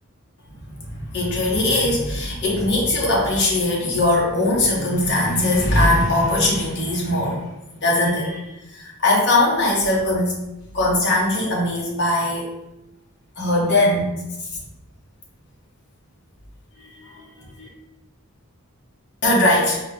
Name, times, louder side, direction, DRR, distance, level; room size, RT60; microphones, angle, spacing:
voice 1, 0.8-7.5 7.8-10.4 10.7-12.5 13.4-14.1 14.4-14.5 16.8-17.7 19.2-19.8, left 1 dB, 55° left, -3 dB, 1.1 m, -20 dB
4.2 x 2.9 x 3.4 m, 0.94 s
head